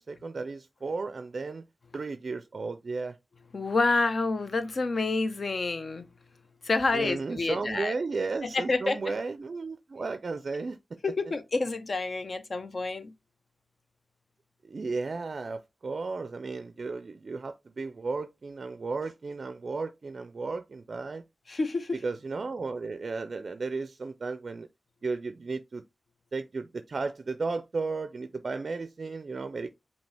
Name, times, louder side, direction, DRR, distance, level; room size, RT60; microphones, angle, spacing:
voice 1, 0.0-1.7 1.9-3.2 6.9-11.0 14.6-21.2 22.0-24.7 25.0-25.8 26.3-29.7, right 4 dB, 55° right, 0.4 m, -34 dB
voice 2, 3.5-6.1 6.6-7.9 8.4-9.1 11.0-13.1 21.5-22.0, left 3 dB, 50° left, 0.7 m, -28 dB
5.2 x 2.7 x 3.3 m
wide cardioid pair, 95°, 0 cm